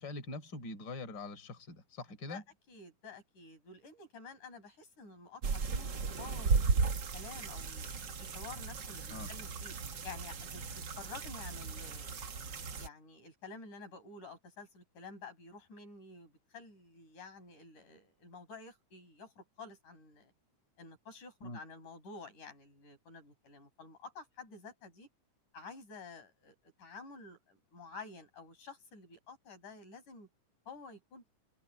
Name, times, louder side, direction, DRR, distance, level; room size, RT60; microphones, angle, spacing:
voice 1, 0.0-2.4 9.1-9.3 21.4-21.6, left 2 dB, 35° left, 4.8 m, -43 dB
voice 2, 2.3-7.9 8.2-9.8 10.0-12.2 12.8-20.3 20.8-25.1 25.5-30.3 30.7-31.4, left 4 dB, 80° left, 7.9 m, -51 dB
sound 1, 5.4-12.9, right 4 dB, 45° right, 1.8 m, -35 dB
omnidirectional pair, 3.5 m